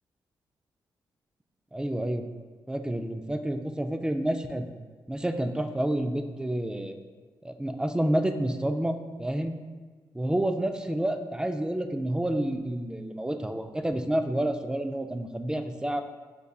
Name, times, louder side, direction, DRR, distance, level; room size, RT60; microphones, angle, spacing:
voice 1, 1.7-2.3 2.7-4.7 5.1-7.0 7.4-9.6 10.1-16.0, right 1 dB, 10° right, 6 dB, 0.4 m, -29 dB
5.3 x 3.5 x 2.3 m, 1.4 s
cardioid pair, 65°, 9 cm